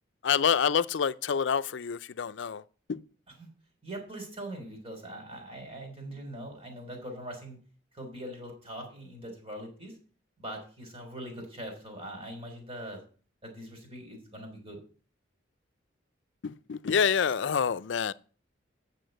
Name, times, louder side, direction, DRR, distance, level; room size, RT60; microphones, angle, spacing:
voice 1, 0.2-2.6 2.9-3.0 16.4-18.1, left 7 dB, 70° left, 0.4 m, -27 dB
voice 2, 3.8-7.6 7.9-10.0 10.4-13.0 13.4-14.8, right 1 dB, 30° right, 3.4 m, -42 dB
8.3 x 6.8 x 7.8 m
head